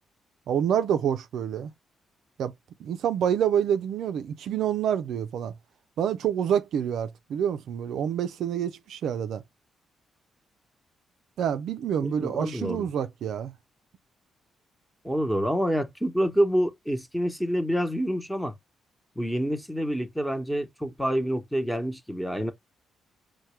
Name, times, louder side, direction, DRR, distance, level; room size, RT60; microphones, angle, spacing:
voice 1, 0.5-1.7 2.4-2.5 2.8-5.5 6.0-9.4 11.4-13.5, right 9 dB, 75° right, 0.3 m, -27 dB
voice 2, 12.0-12.9 15.0-18.5 19.2-22.5, equal, ahead, 0.9 m, -27 dB
4.4 x 2.1 x 2.9 m
supercardioid pair, 65°, 0 cm